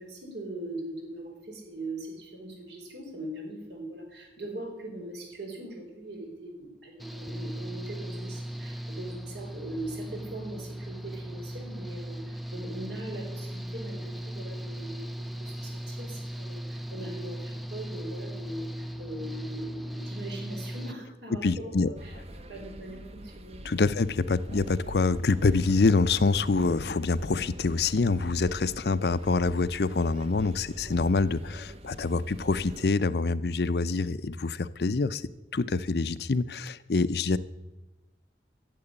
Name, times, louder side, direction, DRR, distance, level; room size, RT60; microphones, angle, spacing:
voice 1, 0.0-22.2 22.5-24.1, right 1 dB, 80° right, 1 dB, 4.4 m, -40 dB
Engine / Mechanical fan, 7.0-20.9, right 1 dB, ahead, 0.4 m, -38 dB
voice 2, 21.4-21.9 23.6-35.2 35.5-37.4, left 3 dB, 65° left, 15 dB, 0.6 m, -26 dB
sound 1, 22.0-32.9, equal, 35° right, 0.9 m, -45 dB
12.5 x 7.7 x 9.9 m, 1.1 s
head